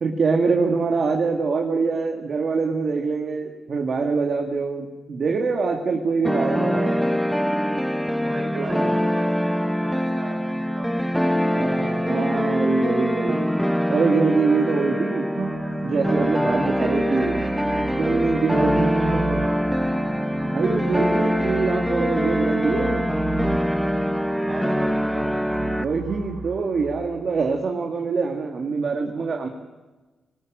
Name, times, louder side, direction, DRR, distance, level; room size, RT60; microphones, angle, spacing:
voice 1, 0.0-7.0 8.6-8.8 11.5-13.5 13.9-15.3 15.8-17.4 18.0-19.4 20.4-23.1 25.7-29.5, right 4 dB, 50° right, 1 dB, 2.3 m, -24 dB
sound 1, 6.2-25.8, equal, ahead, 0.9 m, -23 dB
voice 2, 6.5-7.2 8.2-12.2 14.4-14.5 16.5-18.2 18.6-20.2 24.4-25.8, right 2 dB, 35° right, 2 dB, 7.7 m, -40 dB
sound 2, 15.3-27.3, right 5 dB, 80° right, 4.5 m, -36 dB
20.5 x 19.5 x 7.6 m, 1.2 s
wide cardioid pair, 125°, 0 cm